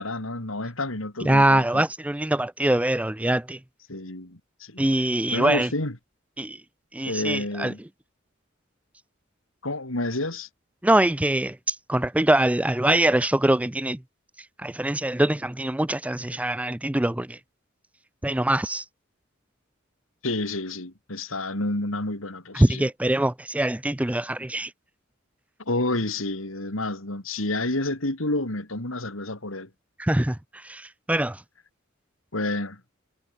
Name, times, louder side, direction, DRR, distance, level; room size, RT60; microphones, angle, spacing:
voice 1, 0.0-1.8 3.9-4.9 5.3-6.0 7.0-7.8 9.6-10.5 20.2-22.9 25.7-29.7 32.3-32.8, left 2 dB, 75° left, 3.8 m, -29 dB
voice 2, 1.2-3.6 4.8-5.7 6.4-6.6 6.9-7.7 10.8-14.0 14.6-17.4 18.2-18.8 22.5-24.7 30.0-31.4, right 1 dB, 5° right, 0.5 m, -23 dB
head